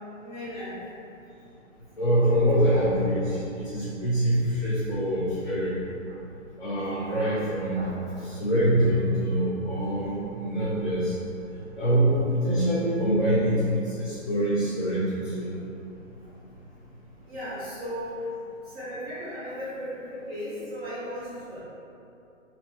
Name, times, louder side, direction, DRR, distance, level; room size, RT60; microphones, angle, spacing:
voice 1, 0.2-0.8 7.7-8.3 16.2-16.3 17.3-18.3 18.6-21.6, equal, 5° right, -13 dB, 0.5 m, -36 dB
voice 2, 2.0-5.8 6.6-7.9 8.3-11.1 11.8-15.5, right 1 dB, 55° left, -10 dB, 1.0 m, -25 dB
2.9 x 2.9 x 3.2 m, 2.8 s
hypercardioid pair, 160°, 39 cm